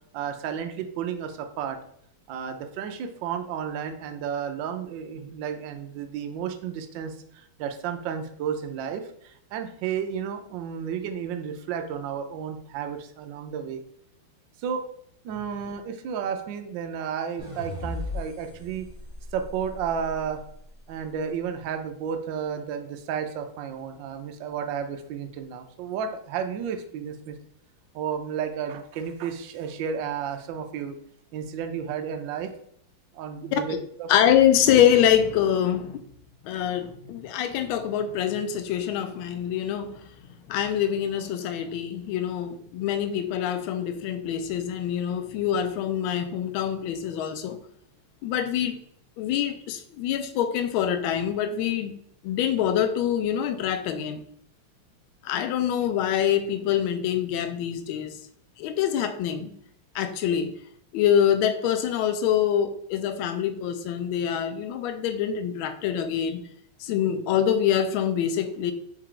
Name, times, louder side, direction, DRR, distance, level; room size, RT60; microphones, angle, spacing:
voice 1, 0.1-1.8 2.3-13.8 14.6-14.8 15.2-18.9 19.3-20.4 20.9-27.4 27.9-31.0 31.3-32.5 33.1-34.1, right 7 dB, 75° right, 6 dB, 1.1 m, -32 dB
sound 1, 17.4-20.6, left 2 dB, 60° right, 0.3 m, -37 dB
voice 2, 34.1-36.0 36.4-40.1 40.5-47.6 48.2-48.8 49.2-52.0 52.2-54.2 55.2-58.2 58.6-59.5 59.9-60.5 60.9-66.5 66.8-68.7, left 9 dB, 75° left, 8 dB, 1.3 m, -25 dB
4.6 x 2.8 x 3.7 m, 0.67 s
omnidirectional pair, 2.4 m